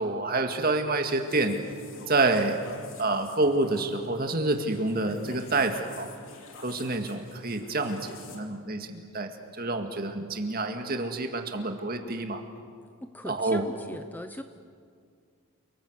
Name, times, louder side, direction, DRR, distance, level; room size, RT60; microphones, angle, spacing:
voice 1, 0.0-1.6 2.1-2.6 3.0-6.1 6.6-9.3 9.6-12.4 13.2-13.6, right 2 dB, 40° right, 5 dB, 2.0 m, -28 dB
sound 1, 1.1-8.4, left 4 dB, 60° left, 2.9 m, -49 dB
voice 2, 13.0-14.4, equal, 10° left, 8 dB, 0.7 m, -39 dB
29.5 x 19.0 x 8.1 m, 2.1 s
head